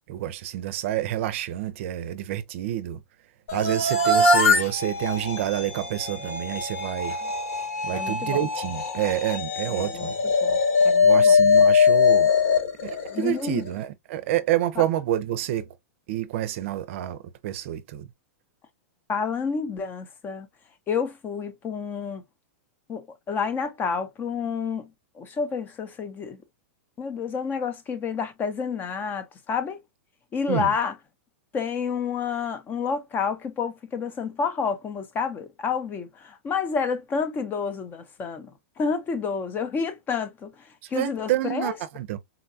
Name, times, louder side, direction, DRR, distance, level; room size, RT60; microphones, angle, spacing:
voice 1, 0.1-3.0 3.5-7.2 7.8-10.1 11.0-12.3 12.8-15.7 16.1-18.1 30.5-30.7 40.9-42.2, right 13 dB, 60° right, 0.5 m, -28 dB
sound 1, 3.5-13.7, left 4 dB, 70° left, 1.5 m, -22 dB
voice 2, 7.9-8.4 9.7-10.1 10.4-10.6 10.8-11.4 13.1-13.6 19.1-20.5 20.9-22.2 22.9-24.9 25.2-26.4 27.0-29.8 30.3-31.0 31.5-38.5 38.8-41.8, left 5 dB, 25° left, 0.6 m, -29 dB
3.9 x 2.2 x 2.5 m
hypercardioid pair, 125°, 8 cm